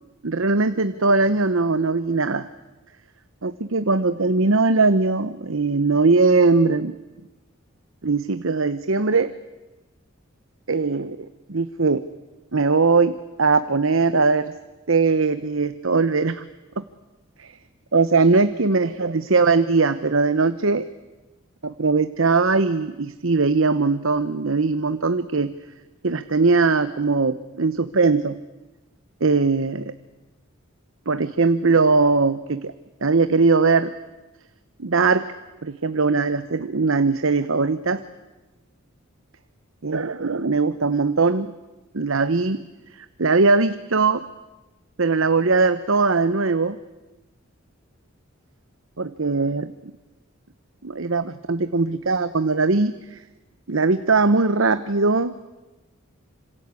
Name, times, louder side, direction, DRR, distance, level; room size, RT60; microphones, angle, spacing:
voice 1, 0.2-2.5 3.4-7.0 8.0-9.3 10.7-12.0 12.5-14.5 14.9-16.4 16.8-16.9 17.4-17.5 17.9-20.8 21.6-25.5 26.0-28.4 29.2-29.9 31.1-32.7 33.0-33.9 34.8-35.2 35.6-38.0 39.8-41.5 41.9-42.6 43.0-44.2 45.0-46.8 49.0-49.7 50.8-53.2 53.7-55.3, right 3 dB, 75° right, 12 dB, 1.0 m, -20 dB
27.0 x 26.0 x 8.4 m, 1.1 s
head